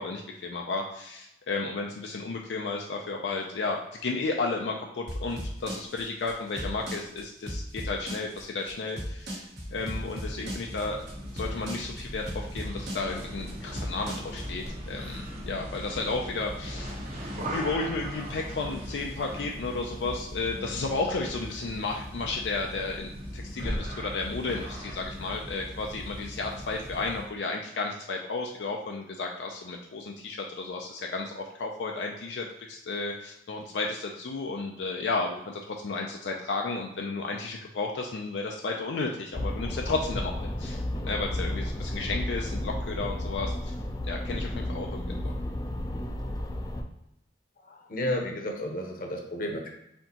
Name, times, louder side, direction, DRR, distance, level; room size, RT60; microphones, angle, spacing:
voice 1, 0.0-11.0 11.3-16.9 17.2-43.7 44.0-45.0, left 3 dB, 80° left, 1 dB, 0.4 m, -33 dB
sound 1, 5.1-14.7, equal, 65° right, 1.1 m, -36 dB
sound 2, 9.6-27.3, equal, 40° right, 0.9 m, -39 dB
sound 3, 39.3-46.8, left 1 dB, 20° left, 0.4 m, -32 dB
voice 2, 47.6-49.7, left 1 dB, 50° left, 2 dB, 0.8 m, -32 dB
4.2 x 3.8 x 2.9 m, 0.84 s
head